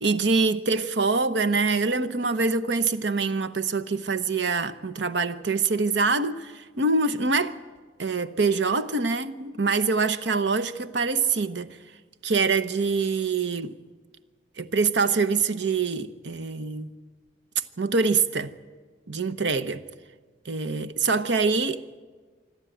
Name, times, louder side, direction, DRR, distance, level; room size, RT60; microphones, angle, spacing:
voice 1, 0.0-7.6 8.0-11.8 12.2-13.8 14.6-16.9 17.8-18.5 19.1-19.8 20.4-21.8, right 4 dB, 80° right, 0.9 m, -25 dB
26.0 x 12.0 x 9.1 m
head